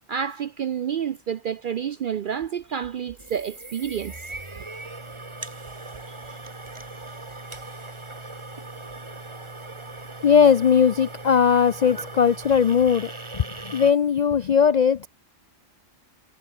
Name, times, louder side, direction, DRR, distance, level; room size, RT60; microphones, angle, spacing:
voice 1, 0.1-4.4 6.1-6.3 9.7-9.8, right 8 dB, 60° right, 0.5 m, -29 dB
sound 1, 3.2-13.9, right 2 dB, 20° right, 1.7 m, -39 dB
voice 2, 10.2-15.1, left 7 dB, 65° left, 0.4 m, -19 dB
omnidirectional pair, 1.4 m